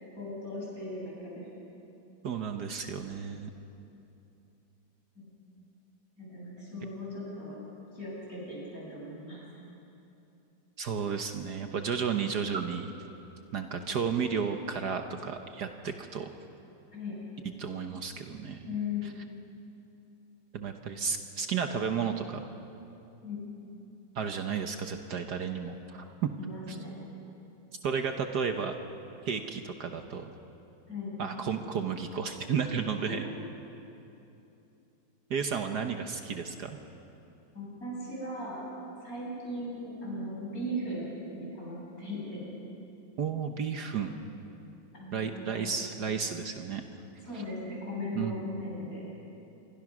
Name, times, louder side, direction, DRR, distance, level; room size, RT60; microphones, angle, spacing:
voice 1, 0.2-1.5 5.2-5.3 6.2-7.6 7.9-9.5 16.9-17.2 18.7-19.0 23.2-23.4 26.4-27.0 30.9-31.1 33.1-33.2 37.5-38.6 39.0-42.4 44.9-45.7 47.3-49.1, left 1 dB, 45° left, -5 dB, 8.6 m, -38 dB
voice 2, 2.2-3.5 10.8-12.9 13.5-16.3 17.4-18.8 20.5-22.4 24.1-26.3 26.7-26.8 27.8-28.7 29.2-30.3 31.2-33.2 35.3-36.8 43.2-44.1 45.1-46.8 48.1-48.4, right 6 dB, 60° right, 6 dB, 1.5 m, -33 dB
27.0 x 23.0 x 6.2 m, 2.9 s
omnidirectional pair, 2.1 m